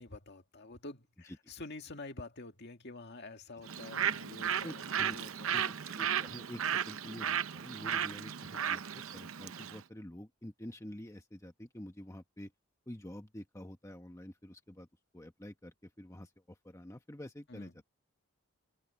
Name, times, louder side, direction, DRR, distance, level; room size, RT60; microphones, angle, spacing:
voice 1, 0.0-5.6 17.5-17.7, left 2 dB, 50° left, 2.0 m, -48 dB
Bird, 3.6-9.8, right 8 dB, 70° right, 0.7 m, -35 dB
voice 2, 4.6-5.1 5.5-12.5 12.9-14.9 15.1-17.8, left 1 dB, 15° left, 1.0 m, -48 dB
open air
head